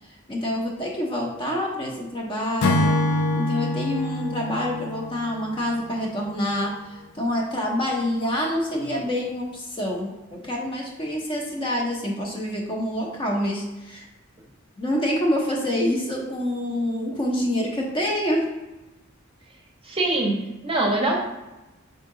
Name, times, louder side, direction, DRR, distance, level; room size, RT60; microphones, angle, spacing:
voice 1, 0.3-3.0 3.3-14.0 14.8-18.5, left 1 dB, 25° left, -1 dB, 0.7 m, -27 dB
Acoustic guitar / Strum, 2.6-6.0, left 1 dB, 85° left, 0.5 m, -25 dB
voice 2, 19.8-20.3 20.6-21.1, right 2 dB, 25° right, -1 dB, 0.8 m, -22 dB
4.9 x 2.8 x 3.7 m, 1.0 s
head